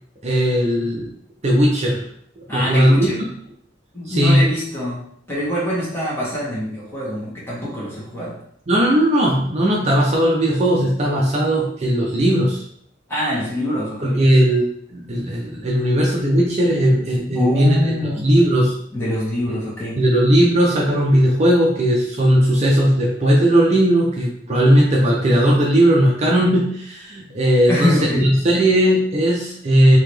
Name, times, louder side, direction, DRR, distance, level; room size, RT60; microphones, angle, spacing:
voice 1, 0.2-1.1 1.4-2.0 2.5-3.1 4.1-4.4 8.7-12.6 14.0-14.6 14.9-18.7 20.0-30.0, equal, 35° right, -2 dB, 0.6 m, -17 dB
voice 2, 2.5-3.2 3.9-8.4 13.1-14.2 17.3-18.3 18.9-20.0 27.7-28.3, left 1 dB, 10° left, -7 dB, 1.6 m, -24 dB
3.8 x 2.9 x 3.3 m, 0.68 s
head